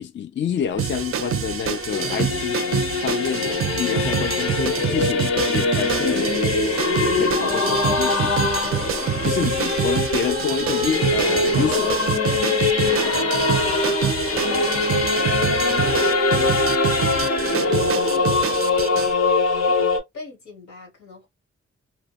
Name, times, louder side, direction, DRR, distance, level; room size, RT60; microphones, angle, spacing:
voice 1, 0.0-2.6 3.0-6.3 7.0-8.4 9.2-11.9, left 7 dB, 40° left, 0.4 m, -28 dB
Singing / Musical instrument, 0.6-20.0, left 3 dB, 60° left, 0.8 m, -22 dB
sound 1, 0.8-19.1, right 9 dB, 50° right, 0.4 m, -27 dB
voice 2, 12.9-16.0 16.2-16.7 17.0-17.5 18.0-21.3, left 2 dB, 90° left, 1.3 m, -40 dB
2.5 x 2.1 x 2.3 m
supercardioid pair, 45°, 29 cm